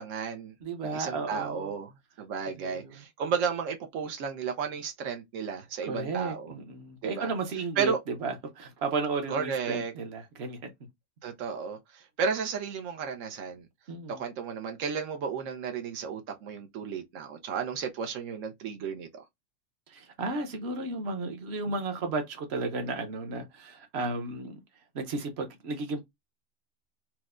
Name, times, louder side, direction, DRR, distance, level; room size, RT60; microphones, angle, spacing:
voice 1, 0.0-0.5 0.8-1.9 2.2-6.5 7.0-7.3 7.8-8.0 9.3-9.9 11.2-13.7 14.1-19.2, right 6 dB, 85° right, 1.0 m, -33 dB
voice 2, 0.6-1.7 2.6-3.0 5.8-10.7 13.9-14.2 19.9-24.6 24.9-26.0, right 3 dB, 60° right, 1.1 m, -34 dB
4.4 x 2.1 x 2.3 m
omnidirectional pair, 1.3 m